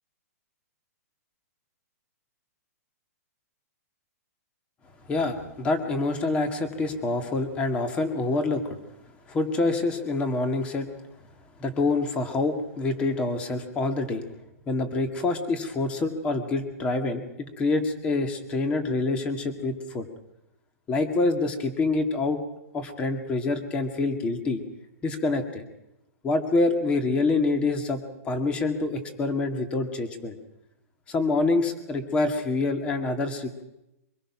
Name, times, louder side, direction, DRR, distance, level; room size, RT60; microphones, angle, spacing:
voice 1, 5.1-8.6 9.3-10.9 11.6-14.2 14.7-20.1 20.9-22.4 22.7-24.6 25.0-25.6 26.2-30.4 31.1-33.6, left 3 dB, 15° left, 7 dB, 2.0 m, -26 dB
24.5 x 21.5 x 6.1 m, 0.88 s
hypercardioid pair, 175°, 9 cm